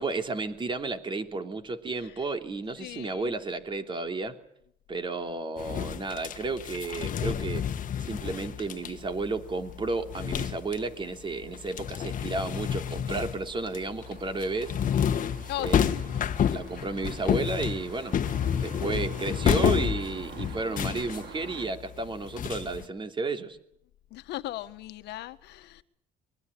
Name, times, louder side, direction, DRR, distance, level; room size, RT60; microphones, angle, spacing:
voice 1, 0.0-4.4 4.9-7.7 8.0-15.2 15.6-16.0 16.5-18.1 18.5-23.6, right 3 dB, 30° right, 7 dB, 3.2 m, -32 dB
voice 2, 2.8-3.3 15.5-16.3 24.1-25.8, left 15 dB, 80° left, 11 dB, 1.6 m, -38 dB
sound 1, 5.6-11.0 11.3-22.8, left 9 dB, 50° left, 1.6 m, -30 dB
sound 2, 14.0-21.7, right 8 dB, 70° right, 3.1 m, -47 dB
23.5 x 21.5 x 8.5 m, 0.71 s
cardioid pair, 110°, 17 cm